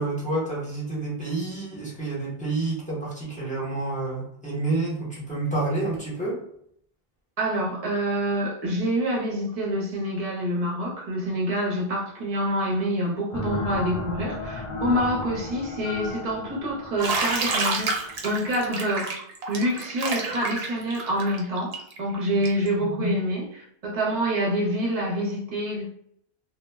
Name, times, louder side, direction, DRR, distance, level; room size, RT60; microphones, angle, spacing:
voice 1, 0.0-6.4, right 2 dB, 10° left, -7 dB, 0.8 m, -29 dB
voice 2, 7.4-19.2 19.5-25.9, equal, 40° right, -2 dB, 0.7 m, -27 dB
sound 1, 13.3-18.7, left 2 dB, 50° left, 0.4 m, -34 dB
Bathtub (filling or washing), 17.0-22.7, right 3 dB, 75° right, 0.8 m, -29 dB
2.1 x 2.1 x 3.2 m, 0.68 s
omnidirectional pair, 1.0 m